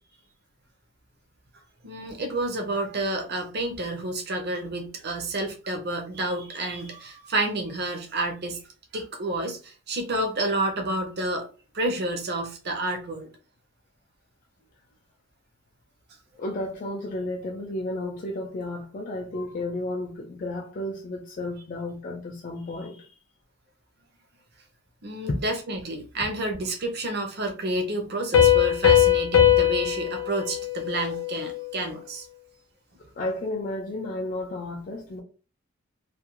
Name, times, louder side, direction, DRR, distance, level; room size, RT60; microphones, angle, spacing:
voice 1, 1.8-8.6 8.9-11.5 11.7-13.3 25.0-32.3, right 2 dB, 55° right, 0.6 m, -30 dB
voice 2, 16.4-23.2 25.3-25.4 33.0-35.2, left 1 dB, 40° left, 0.4 m, -32 dB
Piano, 28.3-31.8, left 10 dB, 75° left, 0.6 m, -21 dB
2.4 x 2.2 x 2.9 m
head